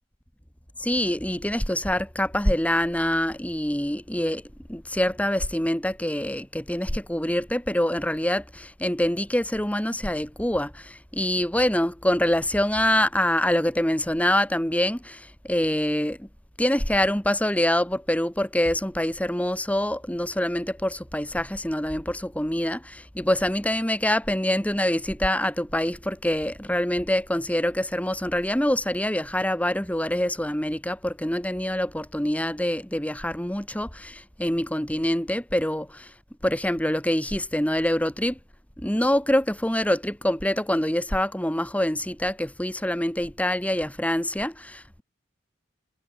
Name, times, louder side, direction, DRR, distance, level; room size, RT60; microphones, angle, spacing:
voice 1, 0.8-4.4 4.7-16.3 16.6-36.1 36.4-38.4 38.8-45.0, left 1 dB, 10° left, 2.6 m, -25 dB
head